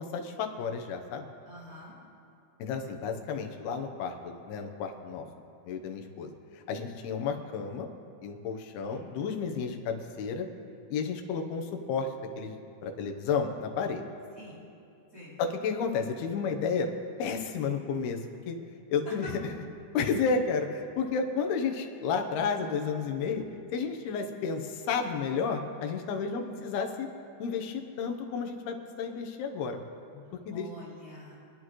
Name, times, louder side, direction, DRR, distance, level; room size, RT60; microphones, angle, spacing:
voice 1, 0.0-1.2 2.6-5.3 5.7-6.3 6.5-7.9 8.2-10.5 10.9-12.1 12.4-14.0 15.4-16.9 17.2-18.2 18.5-18.6 18.9-19.5 19.9-23.4 23.7-27.1 27.4-29.8 30.1-30.7, left 5 dB, 80° left, 4 dB, 2.9 m, -32 dB
voice 2, 1.4-2.0 8.8-9.1 14.4-14.6 15.1-15.4 26.3-26.6 30.2-31.3, equal, 20° right, -10 dB, 3.7 m, -48 dB
27.5 x 9.9 x 3.1 m, 2.6 s
omnidirectional pair, 4.5 m